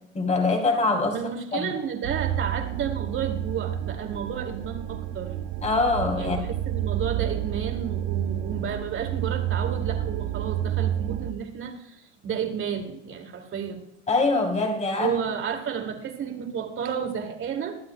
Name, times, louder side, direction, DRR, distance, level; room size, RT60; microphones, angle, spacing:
voice 1, 0.1-1.2 1.5-1.7 5.6-6.4 14.1-15.2, left 3 dB, 20° left, 2 dB, 3.2 m, -24 dB
voice 2, 1.1-5.3 6.2-13.8 15.0-17.8, right 7 dB, 35° right, 5 dB, 2.5 m, -31 dB
sound 1, 2.0-11.3, right 11 dB, 75° right, 0.8 m, -29 dB
22.5 x 12.0 x 2.3 m, 0.81 s
hypercardioid pair, 90°, 34 cm